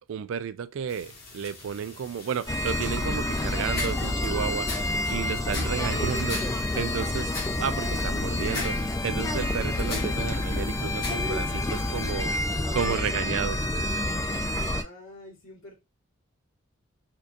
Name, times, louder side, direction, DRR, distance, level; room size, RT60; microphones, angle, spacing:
voice 1, 0.0-4.7 5.1-13.6, right 7 dB, 70° right, 0.3 m, -32 dB
sound 1, 0.9-12.1, left 3 dB, 45° left, 1.2 m, -41 dB
sound 2, 2.5-14.8, left 1 dB, 15° left, 0.3 m, -28 dB
voice 2, 14.7-15.7, left 2 dB, 70° left, 1.8 m, -47 dB
4.4 x 2.6 x 2.5 m
head